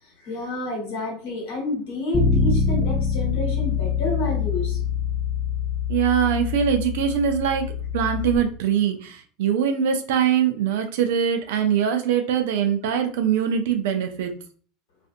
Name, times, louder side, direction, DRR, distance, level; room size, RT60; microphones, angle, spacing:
voice 1, 0.0-4.8, left 1 dB, 70° left, -1 dB, 1.2 m, -29 dB
Bass guitar, 2.1-8.4, left 6 dB, 30° left, 0.7 m, -25 dB
voice 2, 5.9-7.7 7.9-14.3, right 8 dB, 70° right, 6 dB, 0.4 m, -22 dB
2.6 x 2.4 x 2.4 m, 0.43 s
hypercardioid pair, 80°, 0 cm